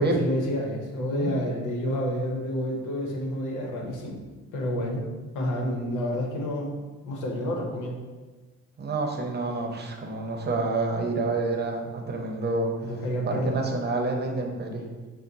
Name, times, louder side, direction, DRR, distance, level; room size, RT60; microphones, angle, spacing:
voice 1, 0.0-4.2 4.5-5.1 5.3-8.0 12.8-13.6, equal, 85° left, 1 dB, 0.9 m, -29 dB
voice 2, 1.0-1.3 8.8-12.7 13.2-14.8, right 3 dB, 35° right, 2 dB, 0.8 m, -28 dB
5.6 x 2.2 x 3.9 m, 1.3 s
cardioid pair, 90°, 30 cm